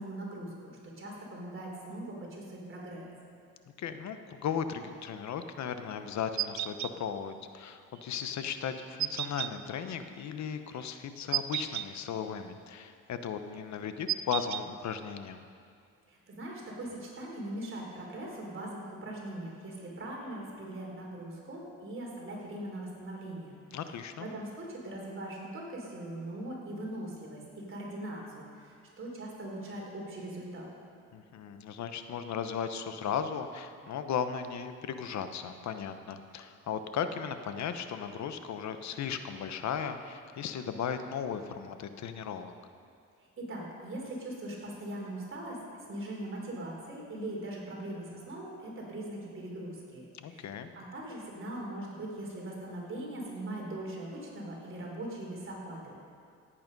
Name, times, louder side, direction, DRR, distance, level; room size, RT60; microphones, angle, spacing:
voice 1, 0.0-3.1 16.1-23.6 24.2-30.7 43.4-45.6 45.9-50.0 50.3-56.0, right 1 dB, 45° right, -2 dB, 3.7 m, -41 dB
voice 2, 3.8-15.4 23.7-24.3 31.1-42.5 50.1-50.7, left 7 dB, 65° left, 9 dB, 1.0 m, -36 dB
sound 1, 6.4-6.9 9.0-9.5 11.3-11.9 14.1-14.6, right 13 dB, 65° right, 0.5 m, -32 dB
17.5 x 8.8 x 5.4 m, 2.3 s
cardioid pair, 90°, 30 cm